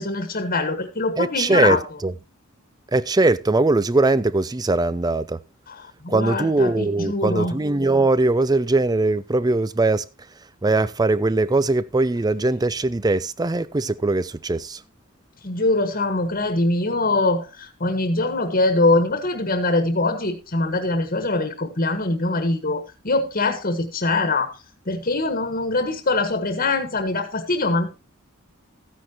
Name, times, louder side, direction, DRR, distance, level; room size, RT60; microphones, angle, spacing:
voice 1, 0.0-1.8 5.7-7.6 15.4-24.5 24.9-27.9, left 2 dB, 45° left, 1.5 m, -23 dB
voice 2, 1.2-2.1 2.9-5.4 6.1-10.0 10.6-14.8, right 2 dB, 20° right, 0.4 m, -20 dB
14.5 x 9.9 x 2.9 m
head